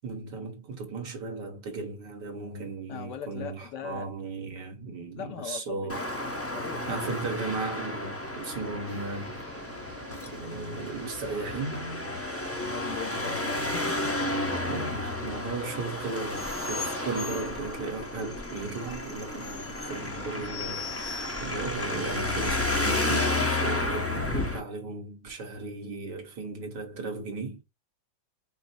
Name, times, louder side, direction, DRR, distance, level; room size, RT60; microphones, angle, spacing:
voice 1, 0.0-6.0 6.9-9.4 10.4-11.9 14.7-27.6, right 3 dB, 65° right, 1.9 m, -36 dB
voice 2, 2.9-4.1 5.2-6.2 6.5-7.0 12.6-14.2, left 8 dB, 70° left, 1.4 m, -40 dB
Traffic noise roadway noise, 5.9-24.6, left 2 dB, 15° left, 0.5 m, -32 dB
sound 1, 8.9-15.0, equal, 35° right, 0.9 m, -45 dB
sound 2, 16.3-23.0, left 4 dB, 40° left, 1.3 m, -41 dB
5.1 x 2.1 x 4.2 m
omnidirectional pair, 2.0 m